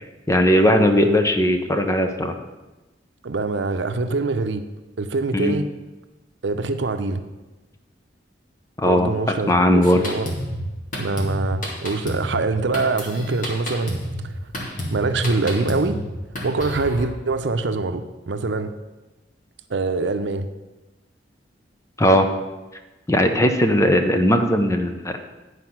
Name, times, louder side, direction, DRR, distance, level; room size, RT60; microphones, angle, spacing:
voice 1, 0.3-2.4 5.3-5.6 8.8-9.1 9.5-10.0 22.0-22.3 23.1-25.1, equal, 15° left, 6 dB, 0.7 m, -18 dB
voice 2, 3.2-4.6 5.0-5.7 6.4-7.2 8.8-10.3 11.0-14.0 14.9-16.0 16.4-18.7 19.7-20.5, right 3 dB, 80° right, 9 dB, 0.7 m, -24 dB
Drum kit, 9.8-17.0, equal, 50° left, 2.0 m, -31 dB
9.8 x 5.0 x 5.9 m, 1.1 s
head